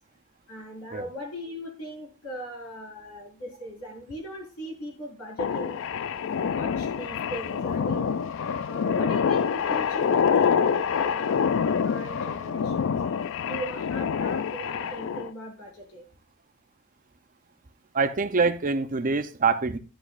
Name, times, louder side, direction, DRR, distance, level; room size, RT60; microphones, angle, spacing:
voice 1, 0.5-5.8 6.4-8.2 8.6-13.0 13.5-16.0, equal, 85° left, -2 dB, 4.9 m, -39 dB
sound 1, 5.4-15.3, left 6 dB, 60° left, 0.4 m, -26 dB
voice 2, 17.9-19.8, right 4 dB, 35° right, 9 dB, 0.6 m, -25 dB
11.5 x 8.2 x 2.5 m, 0.34 s
head